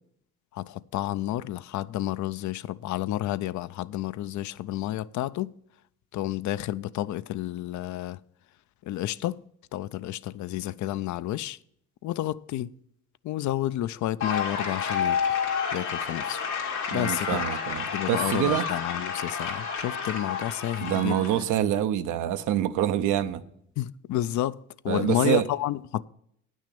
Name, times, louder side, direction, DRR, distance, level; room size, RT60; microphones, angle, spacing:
voice 1, 0.5-5.5 6.1-8.2 8.8-9.4 9.7-11.6 12.0-12.7 13.2-15.4 15.7-16.4 16.9-17.5 17.9-21.3 23.8-26.0, left 14 dB, 70° left, 0.5 m, -30 dB
sound 1, 14.2-21.4, left 6 dB, 90° left, 2.3 m, -30 dB
voice 2, 16.9-18.7 20.8-23.4 24.9-25.5, right 11 dB, 90° right, 0.7 m, -26 dB
9.1 x 6.3 x 8.4 m
cardioid pair, 90°, 30 cm